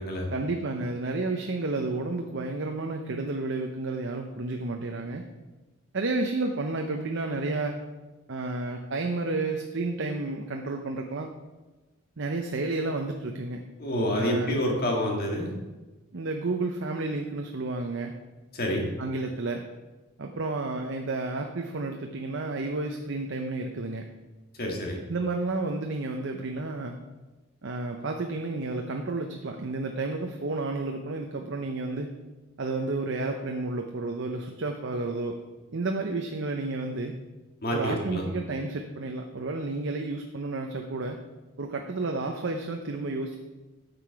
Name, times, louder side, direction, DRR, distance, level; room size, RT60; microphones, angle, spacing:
voice 1, 0.3-5.2 5.9-7.8 8.3-11.3 12.2-13.6 14.2-14.6 16.1-18.1 19.0-19.6 20.2-24.1 25.1-27.0 27.6-32.1 32.6-35.4 35.7-37.2 37.7-41.2 41.6-43.4, right 3 dB, 60° right, 3 dB, 0.7 m, -31 dB
voice 2, 13.8-15.5 18.5-18.9 24.6-25.0 37.6-38.3, equal, 45° left, 0 dB, 2.0 m, -28 dB
9.5 x 6.8 x 4.7 m, 1.2 s
head